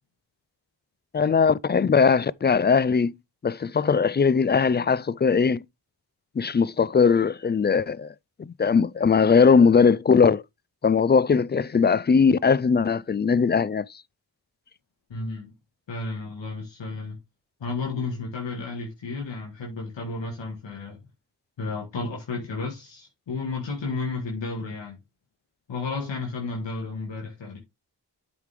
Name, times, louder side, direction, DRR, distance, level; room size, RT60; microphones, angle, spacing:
voice 1, 1.1-3.2 3.4-5.6 6.4-8.1 8.4-10.4 10.8-13.9, left 5 dB, 25° left, 0.4 m, -20 dB
voice 2, 15.1-15.5 15.9-17.2 17.6-21.0 21.6-25.0 25.7-27.6, left 3 dB, 90° left, 1.7 m, -32 dB
8.0 x 5.2 x 3.4 m
cardioid pair, 45°, 43 cm